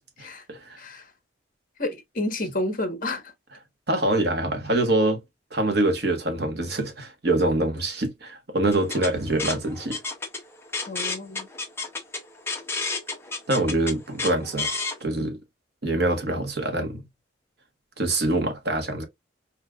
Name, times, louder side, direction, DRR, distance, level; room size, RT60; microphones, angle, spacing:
voice 1, 0.8-1.1 1.8-3.3 10.9-11.5, left 1 dB, 45° left, 1.3 m, -30 dB
voice 2, 3.9-5.2 5.5-10.0 13.5-14.7 15.0-15.4 15.8-17.0 18.0-19.0, right 2 dB, 55° right, 1.3 m, -24 dB
sound 1, 8.7-15.0, left 3 dB, 15° left, 1.1 m, -31 dB
4.5 x 3.6 x 2.4 m
head